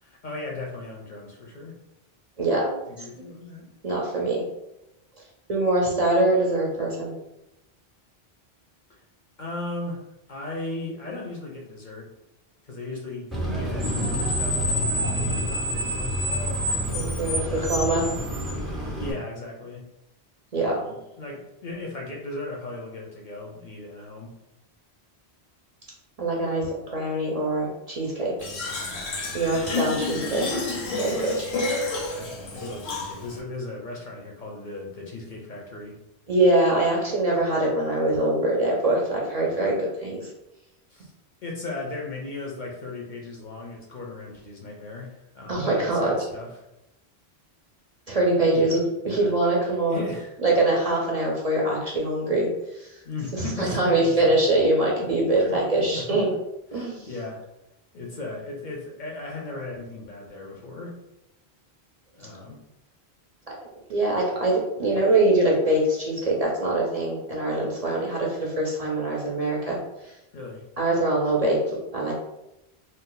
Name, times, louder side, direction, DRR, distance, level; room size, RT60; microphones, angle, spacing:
voice 1, 0.0-1.7 2.9-3.7 9.4-10.0 10.3-12.1 12.6-14.7 15.2-16.1 17.4-17.8 19.0-19.8 20.6-24.3 32.1-36.0 40.9-41.1 41.4-46.6 48.5-49.4 49.7-50.3 53.0-54.4 55.0-56.4 56.7-57.4 57.9-61.0 62.1-62.6 70.3-70.7, left 2 dB, 55° left, -1 dB, 0.7 m, -37 dB
voice 2, 2.4-2.8 3.2-3.3 3.8-4.4 5.5-7.1 16.9-18.0 20.5-20.8 26.2-28.3 29.3-30.6 31.0-31.5 36.3-40.3 45.5-46.2 48.1-50.1 50.4-52.5 52.7-53.0 53.6-56.3 56.7-57.1 63.9-70.1 70.8-72.1, right 2 dB, 45° right, -3 dB, 0.6 m, -23 dB
Screech, 13.3-19.1, equal, ahead, 0.5 m, -27 dB
Fill (with liquid), 28.4-33.4, left 2 dB, 80° left, 1.0 m, -30 dB
2.6 x 2.3 x 3.8 m, 0.90 s
omnidirectional pair, 1.1 m